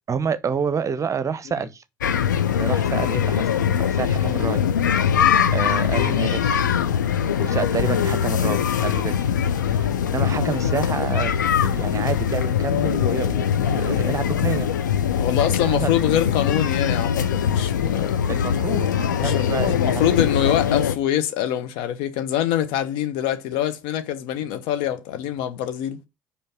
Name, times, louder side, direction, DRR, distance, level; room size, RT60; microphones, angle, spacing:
voice 1, 0.1-1.8 2.6-4.6 5.5-6.7 7.4-9.4 9.7-11.3 11.6-14.7 15.6-16.0 18.3-20.0, right 6 dB, 30° right, 0.8 m, -29 dB
sound 1, 2.0-21.0, left 8 dB, 80° left, 0.6 m, -22 dB
voice 2, 5.9-6.3 15.2-18.2 19.1-26.0, left 11 dB, 60° left, 1.0 m, -25 dB
5.3 x 5.0 x 5.8 m
figure-of-eight pair, 50°, 10 cm